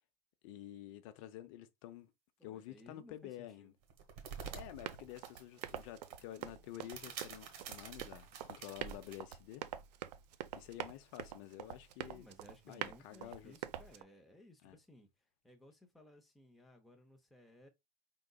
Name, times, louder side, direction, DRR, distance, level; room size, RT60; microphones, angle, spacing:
voice 1, 0.4-2.1 2.4-3.7 4.5-9.6 10.5-12.3 12.7-13.6 14.6-14.8, left 12 dB, 50° left, 0.7 m, -50 dB
voice 2, 2.4-3.7 12.1-17.7, left 1 dB, ahead, 0.7 m, -60 dB
sound 1, 3.8-9.2, right 7 dB, 55° right, 1.3 m, -49 dB
Run, 4.4-14.0, right 11 dB, 85° right, 0.6 m, -46 dB
5.1 x 3.9 x 2.2 m
supercardioid pair, 165°, 21 cm